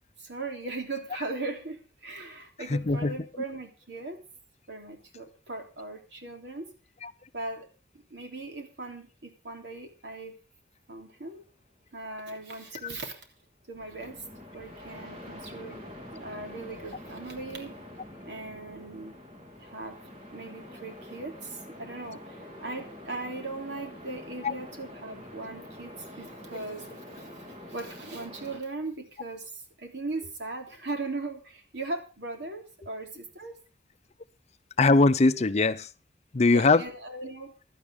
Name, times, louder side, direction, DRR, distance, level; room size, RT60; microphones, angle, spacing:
voice 1, 0.2-4.2 4.7-6.7 7.3-7.7 7.9-10.3 10.9-11.4 11.9-13.3 13.7-14.2 14.5-15.8 16.1-17.7 18.2-19.1 19.6-19.9 20.3-33.5 36.5-37.5, right 2 dB, 80° right, 3.3 m, -39 dB
voice 2, 2.7-3.1 7.0-7.1 24.4-24.5 34.8-35.9 36.3-36.8, left 3 dB, 40° left, 0.6 m, -21 dB
sound 1, 13.7-28.6, left 1 dB, 35° right, 3.2 m, -46 dB
16.5 x 11.5 x 3.6 m
head